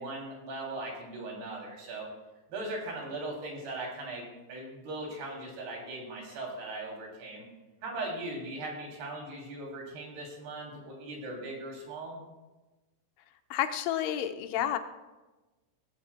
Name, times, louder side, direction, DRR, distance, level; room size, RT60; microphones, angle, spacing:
voice 1, 0.0-2.1 2.5-7.5 7.8-12.2, right 2 dB, 65° right, -1 dB, 4.9 m, -39 dB
voice 2, 13.5-14.8, left 11 dB, 85° left, 8 dB, 3.2 m, -30 dB
18.5 x 15.0 x 2.2 m, 1.1 s
omnidirectional pair, 5.2 m